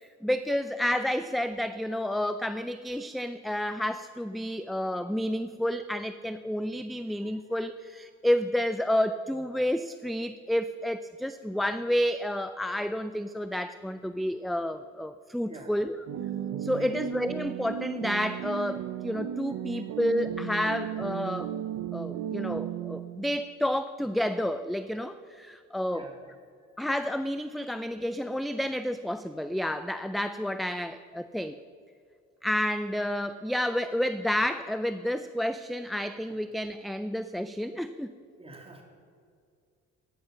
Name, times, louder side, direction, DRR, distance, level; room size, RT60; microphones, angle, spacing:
voice 1, 0.0-16.1 16.6-21.5 21.9-26.1 26.8-31.6 32.4-38.1, left 1 dB, ahead, 11 dB, 0.3 m, -30 dB
sound 1, 16.1-23.4, right 11 dB, 70° right, 0.6 m, -35 dB
voice 2, 38.4-38.8, right 2 dB, 20° right, 1 dB, 2.7 m, -47 dB
11.0 x 9.6 x 6.3 m, 2.2 s
cardioid pair, 90°, 30 cm